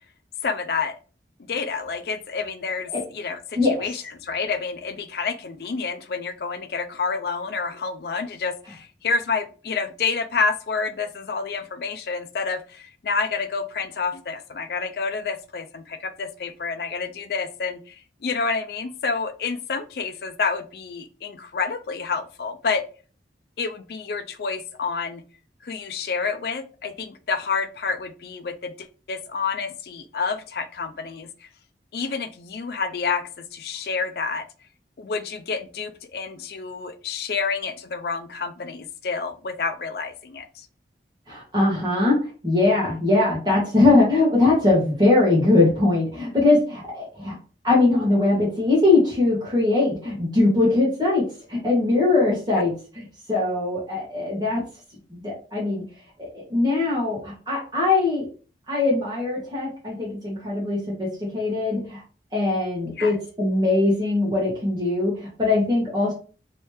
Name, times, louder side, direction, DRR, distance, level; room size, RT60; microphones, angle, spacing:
voice 1, 0.4-0.9 1.5-22.9 23.6-25.2 25.6-31.5 31.9-34.5 35.0-40.7 52.6-52.7 63.0-63.1, left 5 dB, 60° left, 10 dB, 0.4 m, -29 dB
voice 2, 41.3-47.3 47.6-51.2 51.5-52.7 53.3-54.6 55.1-55.8 56.2-58.2 58.7-61.1 61.3-62.0 62.3-66.1, left 2 dB, 25° right, -5 dB, 1.4 m, -21 dB
3.1 x 3.1 x 3.2 m, 0.37 s
head